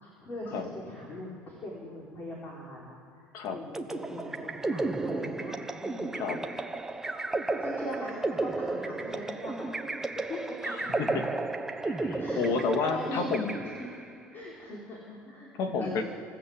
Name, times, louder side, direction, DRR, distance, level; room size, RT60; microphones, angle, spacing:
voice 1, 0.0-6.2 6.9-7.0 7.4-9.7 10.1-10.9 12.2-12.4 12.8-13.2 13.8-15.5 15.8-16.0, left 1 dB, 30° left, -4 dB, 4.9 m, -41 dB
sound 1, 3.7-14.2, right 2 dB, 5° right, 1.1 m, -33 dB
voice 2, 10.7-11.3 11.8-13.5 15.6-16.0, left 4 dB, 55° left, 4 dB, 2.8 m, -30 dB
26.0 x 14.0 x 8.3 m, 2.6 s
cardioid pair, 150°, 7 cm